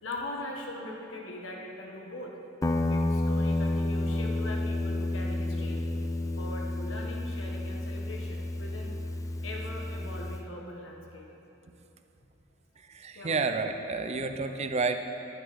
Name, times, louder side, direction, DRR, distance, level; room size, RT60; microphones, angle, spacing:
voice 1, 0.0-2.3 2.9-5.8 6.4-8.9 9.4-11.3 13.1-13.4, left 1 dB, 75° left, -1 dB, 1.4 m, -41 dB
Guitar, 2.6-10.4, left 1 dB, 15° left, 0.4 m, -30 dB
voice 2, 12.9-15.0, right 4 dB, 35° right, 7 dB, 0.5 m, -30 dB
11.0 x 8.9 x 4.6 m, 2.9 s
head